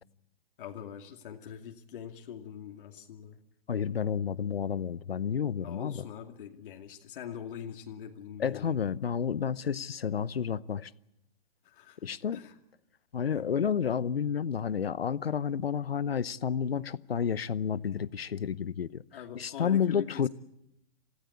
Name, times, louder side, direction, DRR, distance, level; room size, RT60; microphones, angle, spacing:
voice 1, 0.6-3.4 5.6-8.9 11.6-12.6 13.3-13.5 19.1-20.3, left 9 dB, 60° left, 2.5 m, -43 dB
voice 2, 3.7-6.0 8.4-10.9 12.0-12.4 13.1-19.0 19.3-20.3, left 7 dB, 90° left, 0.9 m, -30 dB
28.0 x 16.5 x 8.5 m
hypercardioid pair, 130°, 29 cm